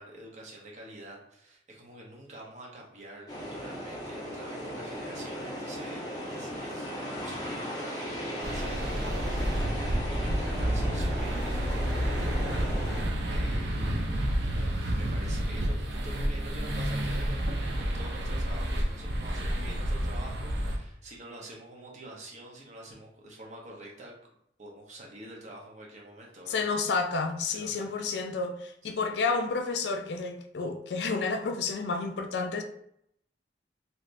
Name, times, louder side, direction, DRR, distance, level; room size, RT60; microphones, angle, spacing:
voice 1, 0.0-6.0 6.3-6.9 7.2-14.1 14.4-24.1 24.6-26.6 27.4-28.1 28.8-28.9, right 1 dB, 40° right, -2 dB, 0.8 m, -47 dB
sound 1, 3.3-13.0, equal, 20° left, 0.9 m, -37 dB
sound 2, 8.4-20.8, equal, 75° right, 0.6 m, -30 dB
voice 2, 26.5-32.6, left 4 dB, 70° left, 6 dB, 0.4 m, -30 dB
3.3 x 2.8 x 2.5 m, 0.73 s
head